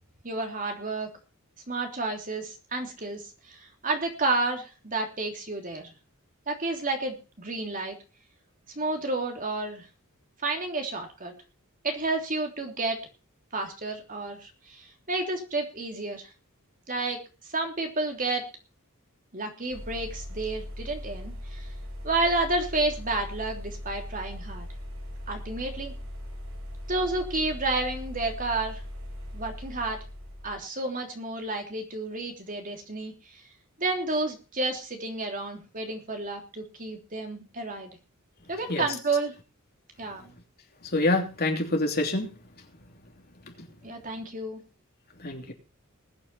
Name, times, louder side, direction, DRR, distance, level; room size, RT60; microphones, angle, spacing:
voice 1, 0.2-1.1 1.7-5.9 6.5-8.0 8.7-9.9 10.4-11.3 11.8-13.0 13.5-16.3 16.9-17.2 17.5-18.4 19.3-21.7 22.0-24.7 25.3-25.9 26.9-28.8 29.3-30.0 30.4-33.1 33.8-37.9 38.5-39.3 40.0-40.3 43.8-44.6, right 2 dB, 35° right, 3.2 m, -30 dB
sound 1, 19.7-30.6, equal, 65° right, 7.4 m, -39 dB
voice 2, 40.9-42.3 45.2-45.5, left 2 dB, 45° left, 3.1 m, -26 dB
20.5 x 9.2 x 4.4 m
head